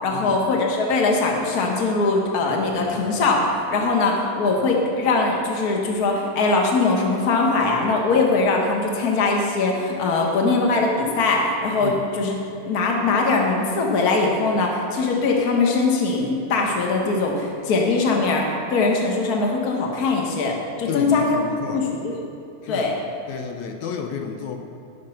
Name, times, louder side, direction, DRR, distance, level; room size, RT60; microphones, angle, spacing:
voice 1, 0.0-12.3 12.6-21.4 21.7-22.2 22.7-23.0, left 3 dB, 40° left, 0 dB, 1.5 m, -21 dB
voice 2, 20.9-21.9 22.6-22.9 23.3-24.6, left 7 dB, 75° left, 5 dB, 2.1 m, -31 dB
16.5 x 6.6 x 5.8 m, 2.8 s
omnidirectional pair, 3.3 m